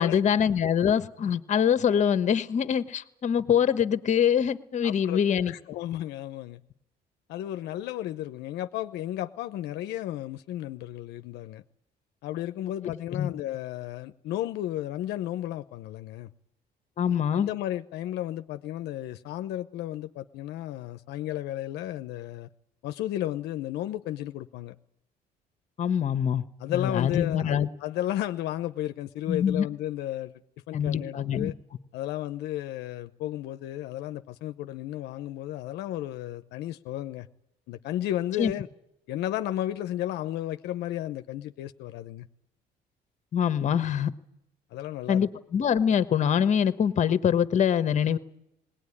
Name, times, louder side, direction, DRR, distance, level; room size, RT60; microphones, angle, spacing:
voice 1, 0.0-5.5 12.8-13.3 17.0-17.5 25.8-27.7 29.3-29.7 30.7-31.5 38.4-38.5 43.3-44.1 45.1-48.2, left 8 dB, 45° left, 1.1 m, -24 dB
voice 2, 4.8-5.2 5.5-6.6 7.3-11.6 12.2-16.3 17.3-22.5 22.8-24.7 26.6-30.4 30.7-31.5 31.9-37.3 37.7-38.7 39.1-42.3 44.7-45.2, left 13 dB, 80° left, 0.8 m, -33 dB
19.5 x 18.0 x 9.8 m
cardioid pair, 110°, 17 cm